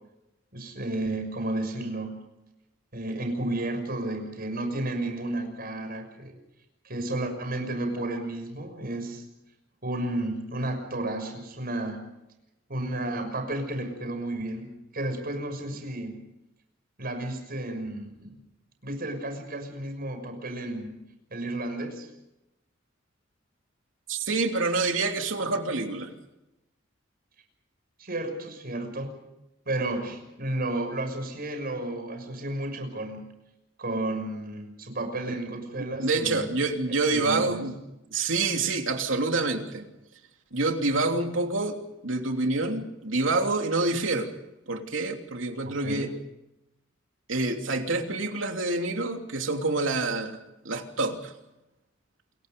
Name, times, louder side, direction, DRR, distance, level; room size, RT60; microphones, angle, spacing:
voice 1, 0.5-2.2 2.9-6.3 6.8-9.2 9.8-12.0 12.7-16.2 17.0-18.3 18.8-20.9 21.3-22.1 28.0-29.1 29.7-33.2 33.8-36.5 36.9-37.7 45.6-46.1, right 1 dB, 50° right, 6 dB, 6.4 m, -32 dB
voice 2, 24.1-26.1 36.0-37.8 38.1-39.9 40.5-44.3 44.7-46.1 47.3-50.4 50.6-51.3, right 3 dB, 80° right, 4 dB, 3.1 m, -27 dB
28.5 x 22.5 x 5.3 m, 0.91 s
head